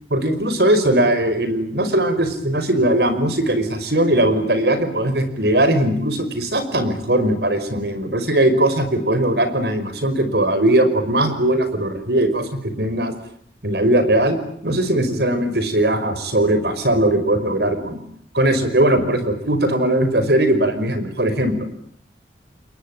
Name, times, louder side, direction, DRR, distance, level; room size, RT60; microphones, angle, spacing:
voice 1, 0.1-12.5 12.8-13.1 13.6-14.4 14.6-18.0 18.3-21.7, right 1 dB, 70° right, 10 dB, 5.3 m, -19 dB
29.0 x 22.5 x 9.1 m, 0.65 s
head